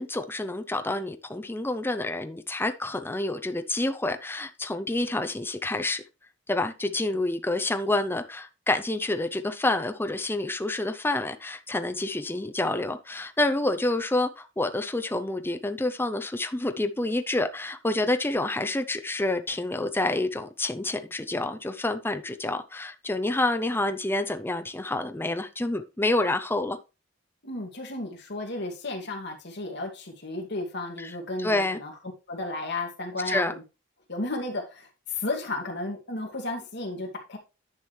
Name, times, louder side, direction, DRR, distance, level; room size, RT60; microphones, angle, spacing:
voice 1, 0.0-6.0 6.5-26.8 31.0-31.1 31.4-31.8 33.3-33.5, left 2 dB, 10° left, 0.6 m, -28 dB
voice 2, 27.4-31.9 32.3-33.6 34.1-37.4, left 2 dB, 60° left, 2.4 m, -33 dB
10.5 x 6.1 x 3.2 m
head